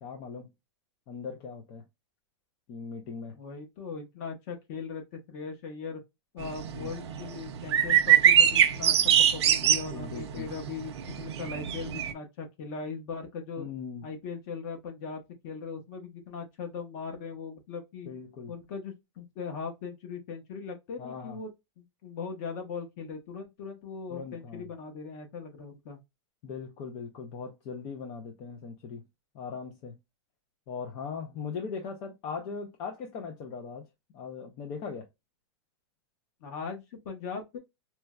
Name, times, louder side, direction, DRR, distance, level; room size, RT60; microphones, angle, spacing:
voice 1, 0.0-0.5 1.1-1.8 2.7-3.4 6.7-6.9 9.6-10.5 13.6-14.1 18.1-18.5 21.0-21.4 24.1-24.7 26.4-29.0 29.3-30.0 30.7-33.8 34.1-35.1, left 5 dB, 25° left, 0.4 m, -39 dB
voice 2, 3.3-6.0 6.3-8.9 9.3-13.7 14.0-18.1 18.5-21.5 21.8-26.0 36.4-37.6, left 5 dB, 40° left, 1.0 m, -39 dB
sound 1, 6.4-12.1, right 9 dB, 65° right, 0.6 m, -23 dB
4.3 x 2.1 x 2.3 m
supercardioid pair, 170°, 15 cm